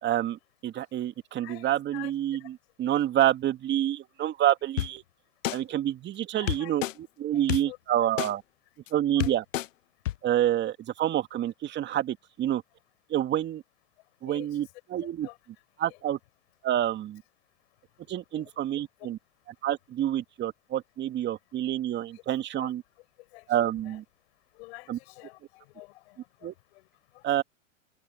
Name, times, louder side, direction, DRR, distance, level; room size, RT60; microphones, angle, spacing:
voice 1, 0.0-5.0 5.5-8.4 8.9-9.4 10.2-12.6 13.1-13.6 14.2-15.3 15.8-16.2 16.6-17.2 18.1-19.2 19.5-22.8 23.5-24.0 24.9-25.0 26.4-26.5 27.2-27.4, right 12 dB, 25° right, 2.4 m, -28 dB
voice 2, 1.4-2.1 2.8-2.9 6.4-6.7 7.7-7.8 9.2-9.4 14.3-14.5 15.2-15.4 18.3-18.4 22.5-22.7 23.3-23.4 23.9-24.0 24.6-26.8 27.1-27.2, left 23 dB, 50° left, 5.3 m, -47 dB
sound 1, 4.8-4.9 5.4-5.6 6.5-6.9 7.5-7.6 8.2-8.3 8.9-9.0 9.2-9.7 10.1-10.2, left 14 dB, 70° left, 0.6 m, -28 dB
hypercardioid pair, 110°, 39 cm